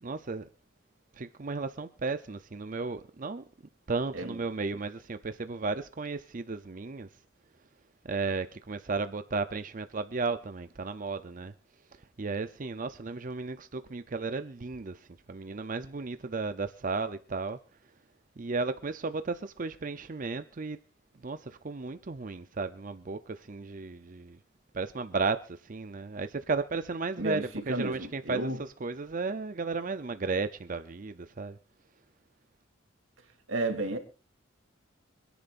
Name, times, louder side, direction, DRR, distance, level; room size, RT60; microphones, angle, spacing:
voice 1, 0.0-0.5 1.1-3.4 3.9-7.1 8.0-11.5 11.9-17.6 18.4-20.8 21.2-24.4 24.7-31.6, right 4 dB, 45° right, 0.6 m, -34 dB
voice 2, 27.2-28.6 33.5-34.0, right 2 dB, 85° right, 2.9 m, -32 dB
26.5 x 10.0 x 2.5 m
head